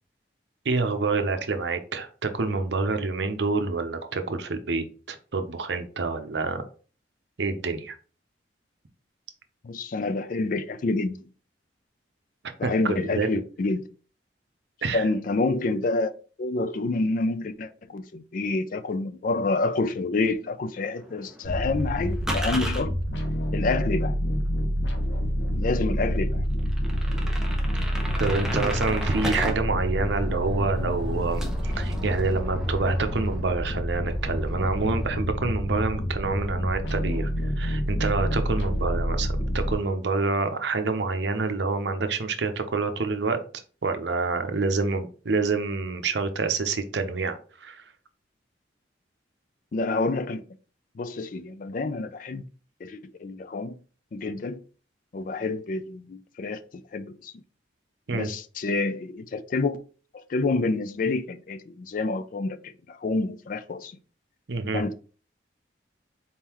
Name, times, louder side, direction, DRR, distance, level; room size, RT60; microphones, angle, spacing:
voice 1, 0.6-6.6 7.4-7.9 12.6-13.4 14.8-15.0 28.2-37.3 37.6-43.4 43.8-47.4 47.6-47.8 58.1-58.3 64.5-64.8, right 3 dB, 70° right, 0.7 m, -27 dB
voice 2, 9.6-11.3 12.6-13.8 14.9-16.1 16.4-22.9 23.5-24.2 25.5-26.4 49.7-50.4 51.0-52.4 52.8-53.8 54.1-54.6 55.1-56.6 56.9-57.3 58.1-59.8 60.1-63.9 64.7-64.9, left 3 dB, 45° left, 0.4 m, -28 dB
sound 1, 20.8-22.8 24.5-24.6 25.0-25.1 25.7-25.8 26.0-26.1 26.6-29.5 29.9-33.7 34.0-35.1, equal, 5° right, 0.7 m, -36 dB
sound 2, 21.4-39.7, equal, 75° left, 1.0 m, -28 dB
4.2 x 3.8 x 2.9 m
head